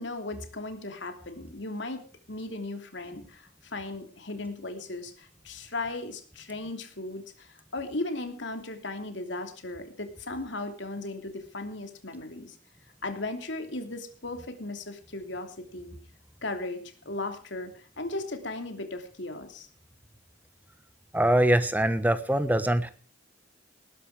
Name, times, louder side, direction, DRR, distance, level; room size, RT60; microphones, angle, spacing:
voice 1, 0.0-2.0 2.3-12.6 13.0-15.9 16.4-19.7, left 2 dB, 65° left, 6 dB, 3.0 m, -36 dB
voice 2, 21.1-22.9, right 1 dB, 10° right, 11 dB, 1.2 m, -23 dB
19.5 x 11.0 x 5.0 m, 0.39 s
head